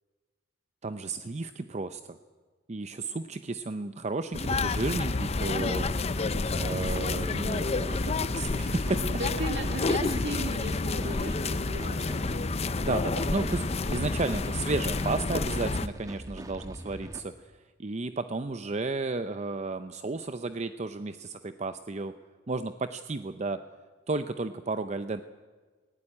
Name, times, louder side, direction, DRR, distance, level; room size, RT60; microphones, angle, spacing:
voice 1, 0.8-2.2 2.7-6.1 6.5-9.1 12.8-17.3 17.8-22.1 22.5-23.6 24.1-25.2, right 3 dB, 35° right, 10 dB, 0.6 m, -33 dB
sound 1, 4.3-15.9, left 3 dB, 35° left, 0.6 m, -29 dB
sound 2, 6.1-17.2, right 1 dB, 20° right, 1.4 m, -43 dB
voice 2, 8.8-12.4, right 2 dB, 65° right, 5 dB, 2.4 m, -36 dB
18.5 x 17.0 x 9.9 m, 1.4 s
head